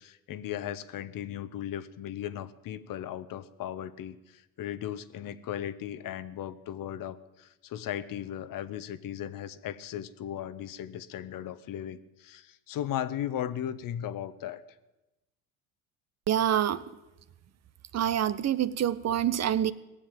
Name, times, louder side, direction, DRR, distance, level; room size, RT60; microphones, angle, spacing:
voice 1, 0.0-14.6, left 11 dB, 55° left, 14 dB, 1.0 m, -37 dB
voice 2, 16.3-16.8 17.9-19.7, right 10 dB, 40° right, 16 dB, 0.7 m, -26 dB
17.5 x 7.4 x 9.0 m, 1.0 s
supercardioid pair, 75°, 40 cm